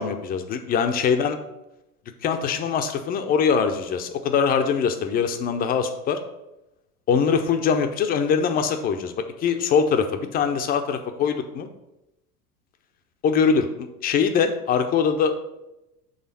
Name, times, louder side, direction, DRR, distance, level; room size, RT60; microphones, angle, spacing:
voice 1, 0.0-1.4 2.2-6.2 7.1-9.1 9.4-11.7 13.2-15.4, left 6 dB, 20° left, 7 dB, 0.4 m, -22 dB
6.4 x 3.4 x 5.3 m, 0.92 s
hypercardioid pair, 85°, 47 cm